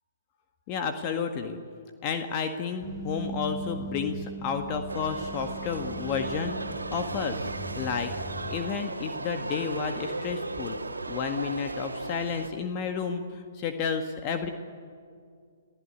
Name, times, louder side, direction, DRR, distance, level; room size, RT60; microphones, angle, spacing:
voice 1, 0.7-1.6 2.0-7.5 7.7-8.1 8.4-10.8 11.1-14.5, left 6 dB, 35° left, 6 dB, 1.7 m, -31 dB
sound 1, 2.8-8.6, right 2 dB, 10° left, 2.5 m, -40 dB
sound 2, 4.9-12.5, right 2 dB, 90° right, 2.0 m, -36 dB
29.5 x 16.5 x 9.6 m, 2.2 s
figure-of-eight pair, 125°, 0 cm